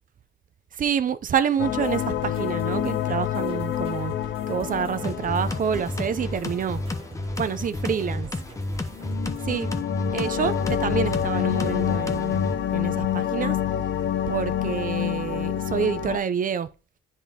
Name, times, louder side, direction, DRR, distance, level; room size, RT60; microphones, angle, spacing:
voice 1, 0.7-4.1 4.5-6.8 7.4-8.3 9.4-9.7 10.1-13.6 14.3-16.7, right 7 dB, 45° right, 0.6 m, -27 dB
sound 1, 1.6-6.9 8.9-16.2, left 10 dB, 65° left, 0.6 m, -28 dB
sound 2, 1.8-9.4, right 1 dB, 30° right, 1.2 m, -44 dB
sound 3, 5.0-12.5, left 1 dB, 15° left, 0.8 m, -31 dB
9.8 x 3.6 x 2.9 m
cardioid pair, 90°, 20 cm